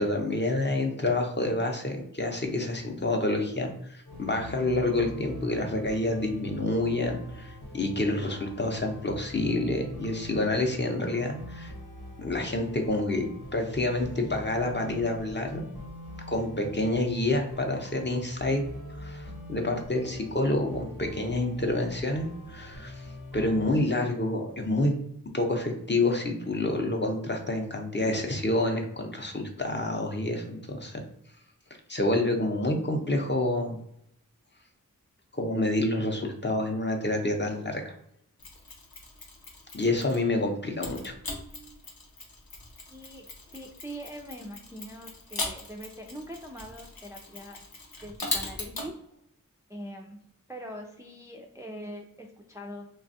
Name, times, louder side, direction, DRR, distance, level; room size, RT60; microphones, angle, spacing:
voice 1, 0.0-11.7 12.2-13.3 13.5-15.7 16.3-18.6 19.0-23.0 23.3-24.9 25.3-31.0 31.9-33.8 35.3-37.9 39.7-41.1, left 2 dB, 30° left, 2 dB, 0.6 m, -28 dB
sound 1, 4.0-23.8, left 1 dB, 65° left, 0.9 m, -42 dB
Mechanisms, 38.4-40.3 40.8-48.9, left 2 dB, 90° left, 0.8 m, -39 dB
voice 2, 42.9-43.3 43.5-47.6 48.0-48.9 49.7-50.2 50.5-52.9, equal, 10° right, 1 dB, 0.4 m, -42 dB
3.2 x 2.3 x 2.6 m, 0.74 s
wide cardioid pair, 50°, 35 cm